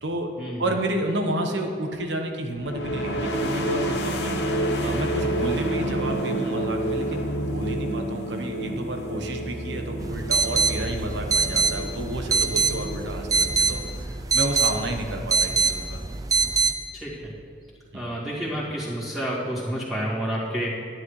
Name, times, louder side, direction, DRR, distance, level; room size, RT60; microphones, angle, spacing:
voice 1, 0.6-16.0 17.9-18.1, right 1 dB, 90° right, 3 dB, 1.1 m, -31 dB
sound 1, 2.6-14.1, right 1 dB, 75° left, 1.0 m, -29 dB
sound 2, 10.0-16.7, right 4 dB, 20° right, 0.4 m, -24 dB
voice 2, 16.9-17.3 17.9-20.7, equal, ahead, -9 dB, 2.2 m, -29 dB
12.5 x 10.0 x 3.2 m, 2.2 s
head